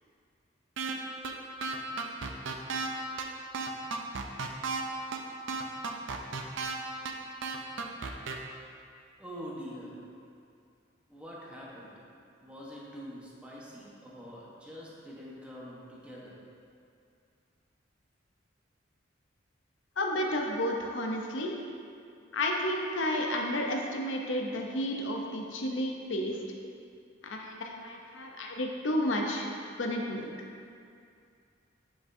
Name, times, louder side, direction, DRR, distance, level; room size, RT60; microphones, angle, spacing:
sound 1, 0.8-0.9 1.2-1.3 1.6-2.9 3.2-3.3 3.5-4.8 5.1-5.2 5.5-6.7 7.0-7.1 7.4-8.3, right 4 dB, 80° right, 0.5 m, -33 dB
voice 1, 9.2-10.0 11.1-12.0 12.4-16.3, equal, 5° right, -6 dB, 1.1 m, -45 dB
voice 2, 20.0-21.5 22.3-26.4 27.2-29.5 29.8-30.3, left 1 dB, 80° left, 1 dB, 0.7 m, -31 dB
7.7 x 5.9 x 2.7 m, 2.4 s
head